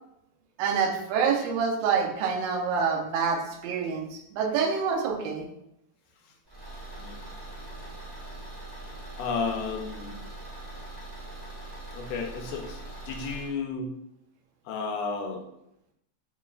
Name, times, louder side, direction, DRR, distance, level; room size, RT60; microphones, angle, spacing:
voice 1, 0.6-5.4, right 6 dB, 85° right, 1 dB, 1.4 m, -27 dB
Car / Engine, 6.5-13.5, right 2 dB, 70° right, 0.4 m, -42 dB
voice 2, 9.2-10.1 11.9-12.8 13.1-13.9 14.7-15.4, left 4 dB, 80° left, 3 dB, 2.0 m, -32 dB
4.8 x 3.1 x 2.3 m, 0.79 s
omnidirectional pair, 3.6 m